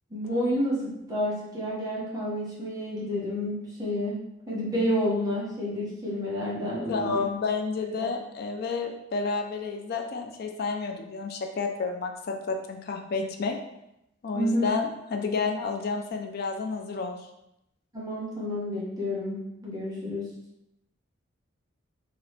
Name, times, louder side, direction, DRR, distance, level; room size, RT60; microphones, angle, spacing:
voice 1, 0.1-4.2 4.5-7.2 8.0-8.1 14.3-14.7 17.9-20.3, equal, 20° right, -7 dB, 0.9 m, -29 dB
voice 2, 6.9-13.6 14.2-17.2, left 4 dB, 50° left, 4 dB, 0.3 m, -30 dB
2.9 x 2.8 x 3.2 m, 0.84 s
head